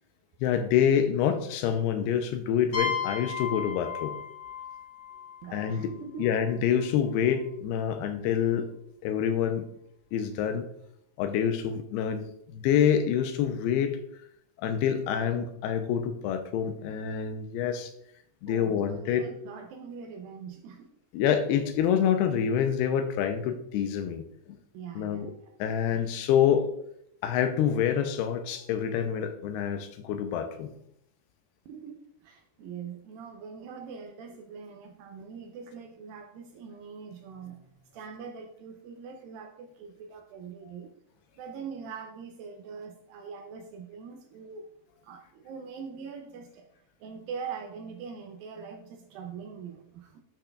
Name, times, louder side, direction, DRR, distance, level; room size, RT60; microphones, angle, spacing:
voice 1, 0.4-4.2 5.5-5.9 6.2-8.7 9.0-9.7 10.1-10.7 11.2-14.0 14.6-17.9 18.4-19.3 21.1-24.6 25.0-25.3 25.6-26.7 27.2-30.7, left 8 dB, 90° left, 8 dB, 2.6 m, -27 dB
sound 1, 2.7-6.4, left 6 dB, 45° left, 2.3 m, -35 dB
voice 2, 5.4-6.4 18.5-20.9 24.7-25.5 31.7-40.9 41.4-44.6 45.0-46.7 47.0-50.2, right 6 dB, 80° right, 4 dB, 2.2 m, -43 dB
11.0 x 5.8 x 2.3 m, 0.73 s
omnidirectional pair, 4.6 m